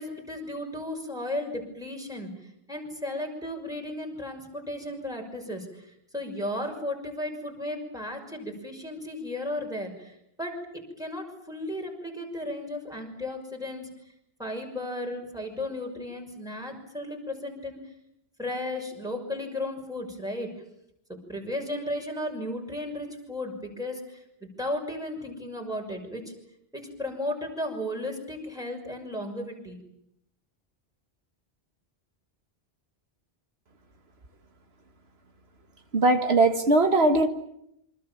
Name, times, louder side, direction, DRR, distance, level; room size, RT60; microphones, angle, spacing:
voice 1, 0.0-13.9 14.4-17.8 18.4-20.5 21.1-26.2 26.7-29.8, left 1 dB, 5° right, 2 dB, 6.0 m, -35 dB
voice 2, 35.9-37.3, right 2 dB, 75° right, 7 dB, 1.8 m, -20 dB
27.5 x 25.0 x 7.2 m, 0.77 s
omnidirectional pair, 1.1 m